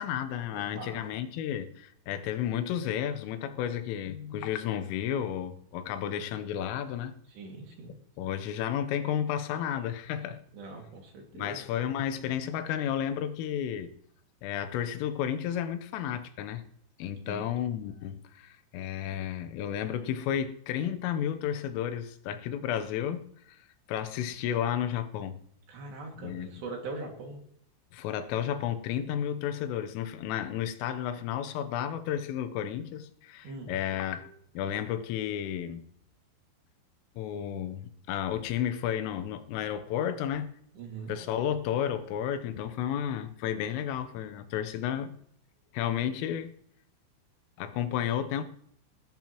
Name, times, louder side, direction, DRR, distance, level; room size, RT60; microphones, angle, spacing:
voice 1, 0.0-7.1 7.9-10.4 11.3-13.9 14.4-16.6 17.0-23.6 23.9-25.4 26.2-26.5 27.9-35.8 37.2-40.6 41.1-45.2 45.7-46.5 47.6-48.4, left 10 dB, 90° left, 3.5 m, -32 dB
voice 2, 0.5-1.0 7.3-7.9 10.5-11.6 17.3-17.4 25.7-27.4 33.4-33.7 40.8-41.2, right 3 dB, 65° right, 4.2 m, -41 dB
20.0 x 13.5 x 3.1 m
omnidirectional pair, 5.7 m